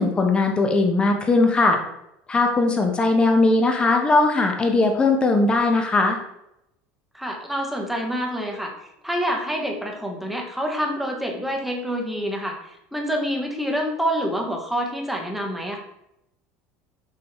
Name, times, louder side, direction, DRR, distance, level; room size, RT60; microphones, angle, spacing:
voice 1, 0.0-1.8 2.3-6.2, left 3 dB, 20° left, 3 dB, 1.0 m, -19 dB
voice 2, 7.1-8.7 9.0-12.6 12.9-15.8, equal, 5° right, 1 dB, 1.1 m, -27 dB
6.8 x 5.4 x 3.0 m, 0.83 s
cardioid pair, 140°, 5 cm